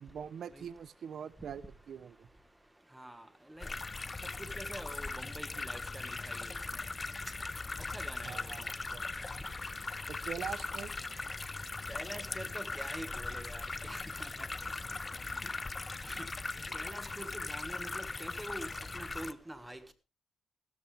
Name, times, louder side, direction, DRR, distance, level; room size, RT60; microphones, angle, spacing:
voice 1, 0.0-2.3 8.2-9.1 10.1-10.9 16.7-16.8, right 8 dB, 60° right, 0.8 m, -43 dB
voice 2, 3.0-3.7 4.6-6.6 7.9-8.5 11.9-14.3 15.4-15.5 16.0-16.3 16.7-18.7 18.9-19.8, right 1 dB, 10° right, 1.6 m, -46 dB
sound 1, 3.6-19.3, left 3 dB, 25° left, 0.6 m, -39 dB
15.5 x 12.5 x 3.4 m
cardioid pair, 90°, 0 cm